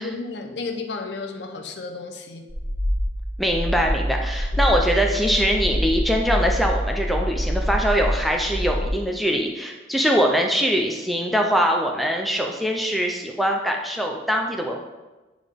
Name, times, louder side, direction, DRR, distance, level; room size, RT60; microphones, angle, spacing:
voice 1, 0.0-2.5 4.5-4.8, left 3 dB, 80° left, 4 dB, 0.7 m, -33 dB
sound 1, 2.5-8.9, equal, 25° right, 1.1 m, -25 dB
voice 2, 3.4-14.8, equal, ahead, 1 dB, 0.5 m, -22 dB
8.7 x 3.5 x 3.6 m, 1.1 s
head